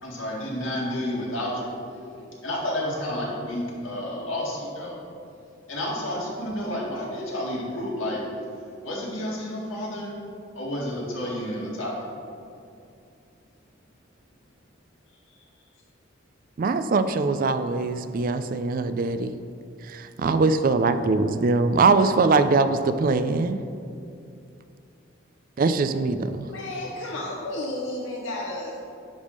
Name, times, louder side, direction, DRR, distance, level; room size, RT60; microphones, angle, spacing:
voice 1, 0.0-5.0 5.7-8.2 8.8-10.1 10.6-12.1, left 1 dB, 85° left, -4 dB, 2.1 m, -30 dB
voice 2, 16.6-19.4 19.9-23.6 25.6-26.5, right 3 dB, 45° right, 11 dB, 0.4 m, -22 dB
voice 3, 26.5-28.8, left 1 dB, 65° left, -2 dB, 0.8 m, -32 dB
10.5 x 3.5 x 6.5 m, 2.5 s
head